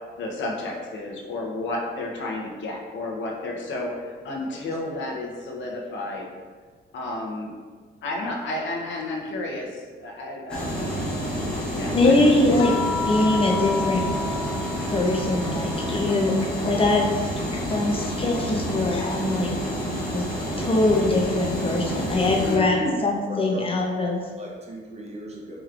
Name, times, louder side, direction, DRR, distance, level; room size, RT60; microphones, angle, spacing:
voice 1, 0.2-6.3 6.9-7.5 8.0-12.3 22.4-23.0, left 2 dB, 70° left, -1 dB, 0.8 m, -32 dB
sound 1, 10.5-22.6, equal, 5° left, 1.3 m, -29 dB
voice 2, 11.9-12.7 13.1-14.0 14.9-16.3 16.6-19.5 20.1-20.2 20.6-24.2, left 2 dB, 30° left, 0 dB, 0.6 m, -22 dB
sound 2, 12.6-17.1 17.4-19.1 20.6-20.8, left 4 dB, 90° left, 0.4 m, -33 dB
voice 3, 23.3-23.6 24.4-25.6, right 1 dB, 35° right, -2 dB, 0.9 m, -38 dB
4.8 x 3.0 x 2.4 m, 1.5 s
cardioid pair, 90°, 20 cm